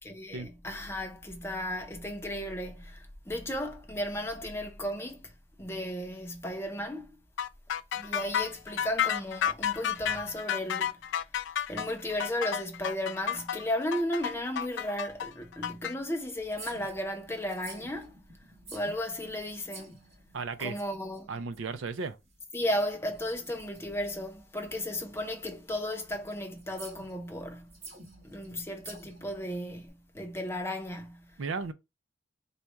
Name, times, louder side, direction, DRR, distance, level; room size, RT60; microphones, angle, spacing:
voice 1, 0.0-5.3 5.6-7.1 7.9-11.0 11.7-18.1 18.7-20.0 20.6-21.4 22.5-27.7 28.2-31.3, left 1 dB, 15° left, 0.7 m, -35 dB
sound 1, 7.4-15.9, left 9 dB, 65° left, 0.3 m, -31 dB
sound 2, 16.4-29.9, right 3 dB, 35° right, 1.2 m, -52 dB
voice 2, 20.3-20.8 21.3-22.2 31.4-31.7, right 4 dB, 80° right, 0.5 m, -34 dB
4.1 x 2.3 x 4.4 m
head